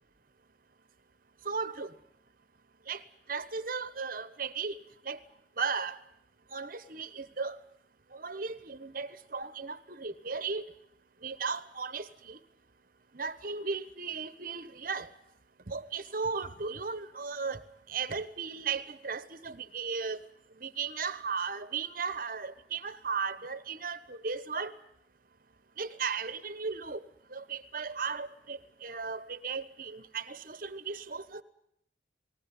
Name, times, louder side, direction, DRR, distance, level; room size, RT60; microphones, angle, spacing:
voice 1, 1.4-1.9 2.9-3.0 3.3-4.8 5.0-5.2 5.6-6.0 6.5-7.6 8.1-10.6 11.2-12.4 13.1-15.1 15.7-17.6 17.9-20.2 20.6-24.7 25.8-27.0 27.3-31.4, right 5 dB, 45° right, 14 dB, 1.2 m, -36 dB
19.0 x 18.5 x 9.9 m, 0.73 s
head